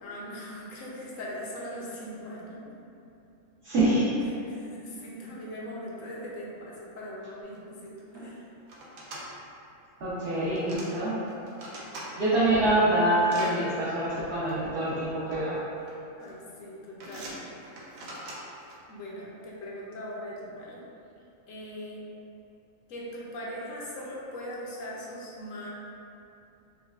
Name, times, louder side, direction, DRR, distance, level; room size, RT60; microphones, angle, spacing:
voice 1, 0.0-2.7 4.5-8.5 15.8-17.3 17.6-17.7 18.9-20.8 21.5-22.0 22.9-25.7, equal, 70° left, -5 dB, 1.0 m, -40 dB
voice 2, 3.6-4.1 8.1-8.3 10.0-11.2 12.2-15.6, right 1 dB, 55° right, -11 dB, 0.9 m, -25 dB
sound 1, 7.5-7.6 7.8-8.2 8.7-9.2 10.2-10.9 11.3-12.1 12.6-13.5 14.5-14.6 15.5-15.9 16.2-16.6 17.0-18.7, right 1 dB, 75° right, 1.1 m, -43 dB
5.3 x 2.2 x 2.3 m, 2.8 s
omnidirectional pair, 1.5 m